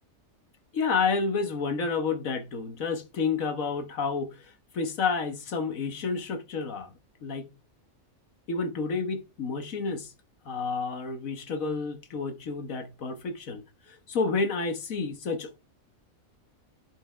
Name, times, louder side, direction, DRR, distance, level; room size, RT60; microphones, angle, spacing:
voice 1, 0.7-6.9 7.2-7.5 8.5-10.1 10.5-15.6, left 4 dB, 75° left, 1.7 m, -30 dB
11.0 x 5.3 x 3.3 m
omnidirectional pair, 1.4 m